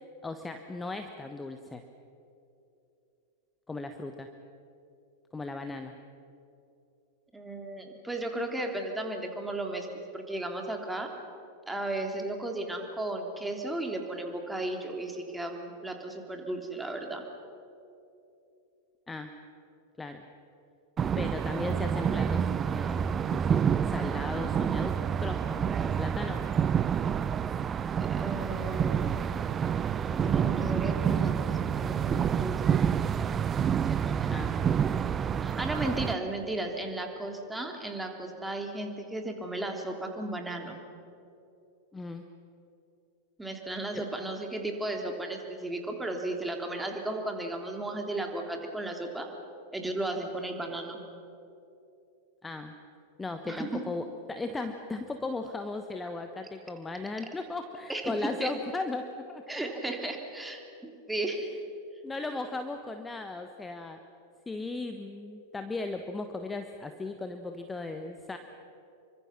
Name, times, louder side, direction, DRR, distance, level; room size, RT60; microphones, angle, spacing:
voice 1, 0.2-1.8 3.7-4.3 5.3-5.9 19.1-19.3 20.0-20.3 21.2-26.4 34.3-34.5 41.9-42.2 43.9-44.1 52.4-52.7 53.2-59.6 62.0-64.0 64.5-68.4, left 3 dB, 10° left, 7 dB, 1.3 m, -37 dB
voice 2, 7.3-9.9 10.1-11.1 11.7-17.2 28.0-29.1 30.1-32.8 33.9-34.6 35.4-40.8 43.4-49.3 49.7-51.0 53.4-53.8 57.9-58.1 58.4-58.5 59.5-61.5, right 2 dB, 5° right, 3 dB, 3.3 m, -35 dB
sound 1, 21.0-36.1, right 8 dB, 25° right, 0.7 m, -28 dB
27.5 x 24.5 x 6.1 m, 2.7 s
figure-of-eight pair, 90°, 0 cm